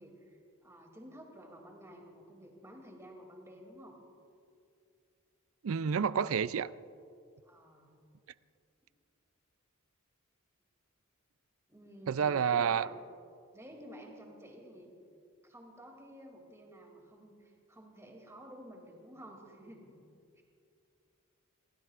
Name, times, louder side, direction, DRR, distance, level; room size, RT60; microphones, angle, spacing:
voice 1, 0.0-4.0 7.4-7.9 11.7-13.0 13.5-14.9 15.4-20.0 20.4-20.5, equal, 15° right, 2.7 m, -51 dB
voice 2, 5.6-6.7 12.1-12.9, right 7 dB, 70° right, 0.4 m, -29 dB
29.0 x 16.5 x 2.5 m
head